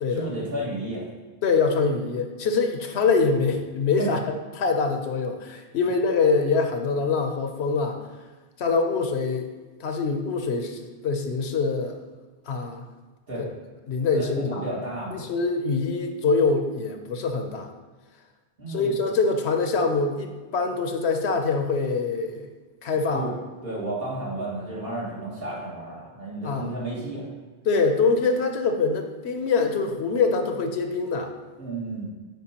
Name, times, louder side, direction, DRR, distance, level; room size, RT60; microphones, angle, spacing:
voice 1, 0.1-1.1 4.0-4.1 13.3-13.5 14.1-15.2 18.6-18.9 23.1-23.4 23.6-27.3 31.6-32.1, right 2 dB, 60° right, -6 dB, 2.1 m, -32 dB
voice 2, 1.4-4.2 4.5-8.0 8.6-9.5 9.8-12.0 12.5-12.8 13.4-13.5 13.9-14.6 15.1-17.7 18.7-22.5 22.8-23.2 26.4-26.7 27.7-31.3, left 4 dB, 80° left, 5 dB, 1.0 m, -24 dB
9.2 x 4.7 x 2.9 m, 1.3 s
omnidirectional pair, 1.1 m